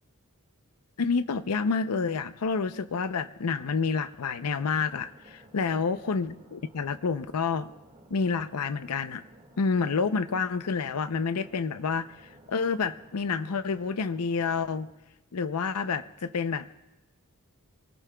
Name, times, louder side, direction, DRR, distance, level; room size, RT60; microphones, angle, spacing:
voice 1, 1.0-7.7 8.1-9.2 9.6-12.1 12.5-14.9 15.3-16.8, left 5 dB, 90° left, 12 dB, 0.6 m, -28 dB
sound 1, 4.4-14.9, right 1 dB, 35° right, 1.8 m, -55 dB
26.0 x 19.5 x 2.3 m, 0.97 s
head